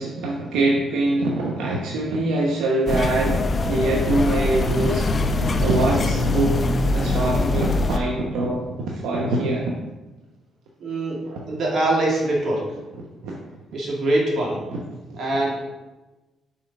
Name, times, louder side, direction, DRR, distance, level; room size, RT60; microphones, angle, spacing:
voice 1, 0.0-6.6 6.9-9.7 11.2-11.4 13.2-13.4 14.7-14.8 15.1-15.2, right 2 dB, 90° right, -2 dB, 0.9 m, -24 dB
sound 1, 2.9-8.0, left 2 dB, 35° left, 0.5 m, -22 dB
voice 2, 10.8-12.7 13.7-14.6 15.2-15.6, right 1 dB, 60° right, -3 dB, 2.4 m, -23 dB
5.6 x 4.8 x 5.3 m, 1.1 s
cardioid pair, 90°, 0 cm